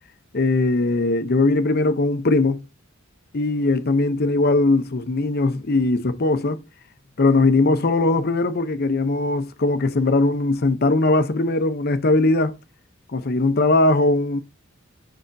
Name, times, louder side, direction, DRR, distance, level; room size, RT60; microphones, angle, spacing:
voice 1, 0.3-2.6 3.3-6.6 7.2-12.5 13.1-14.4, left 2 dB, 50° left, 0.6 m, -20 dB
7.5 x 5.6 x 2.6 m
head